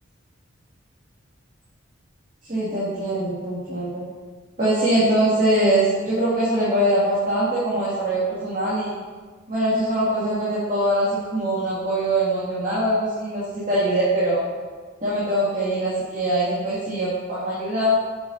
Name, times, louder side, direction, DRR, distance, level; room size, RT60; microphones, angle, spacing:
voice 1, 2.5-4.1 4.6-8.9 9.5-14.4 15.0-18.0, right 1 dB, 40° right, -10 dB, 2.1 m, -22 dB
7.9 x 7.2 x 4.0 m, 1.4 s
head